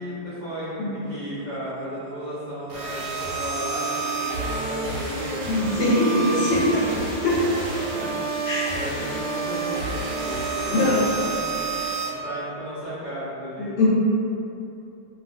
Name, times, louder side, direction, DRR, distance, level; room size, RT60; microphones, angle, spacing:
voice 1, 0.0-6.8 7.2-7.3 7.9-8.4 8.7-11.5 12.0-13.7, equal, 90° right, -15 dB, 0.4 m, -34 dB
sound 1, 2.7-12.1, right 3 dB, 70° right, 1.1 m, -29 dB
voice 2, 5.5-6.7 7.2-7.5 8.5-8.7 10.6-11.0 13.6-13.9, left 1 dB, 85° left, -6 dB, 1.4 m, -22 dB
2.7 x 2.6 x 2.5 m, 2.8 s
omnidirectional pair, 2.0 m